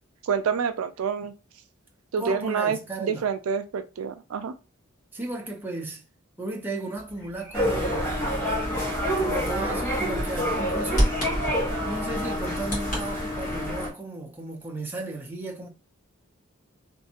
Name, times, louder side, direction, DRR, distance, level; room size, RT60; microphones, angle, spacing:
voice 1, 0.2-1.3 2.1-4.5, right 6 dB, 85° right, 0.4 m, -27 dB
voice 2, 2.2-3.2 5.1-6.0 6.4-8.1 9.2-11.2 11.8-15.7, right 2 dB, 10° right, 0.7 m, -35 dB
Bird vocalization bird call bird song, 7.0-13.0, equal, 40° left, 1.7 m, -33 dB
sound 1, 7.5-13.9, equal, 10° left, 1.3 m, -27 dB
3.1 x 2.6 x 2.8 m
head